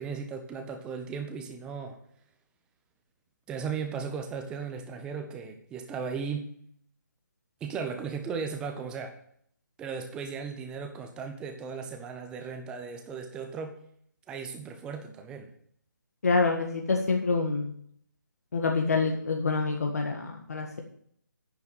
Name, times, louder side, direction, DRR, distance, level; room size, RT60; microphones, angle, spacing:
voice 1, 0.0-2.0 3.5-6.5 7.6-9.2 9.8-13.8 14.3-15.5, right 5 dB, 10° right, 5 dB, 0.8 m, -36 dB
voice 2, 16.2-17.7 18.5-20.8, left 4 dB, 50° left, 2 dB, 1.7 m, -27 dB
9.7 x 7.2 x 7.3 m, 0.64 s
figure-of-eight pair, 145°, 11 cm